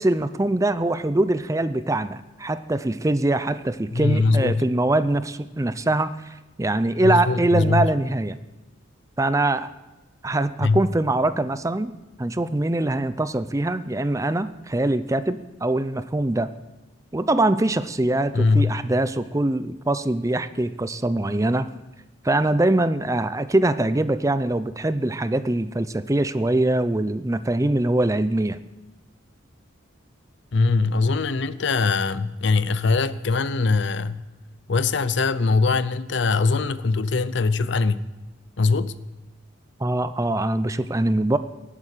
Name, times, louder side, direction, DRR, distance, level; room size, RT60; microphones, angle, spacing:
voice 1, 0.0-8.4 9.2-9.7 10.2-16.5 17.1-21.7 22.2-28.6 39.8-41.4, right 2 dB, 15° right, 0.5 m, -23 dB
voice 2, 3.9-4.6 7.0-7.9 10.6-10.8 18.3-18.7 30.5-34.2 34.7-38.0 38.6-38.9, left 4 dB, 60° left, 0.6 m, -22 dB
18.5 x 8.6 x 6.6 m
head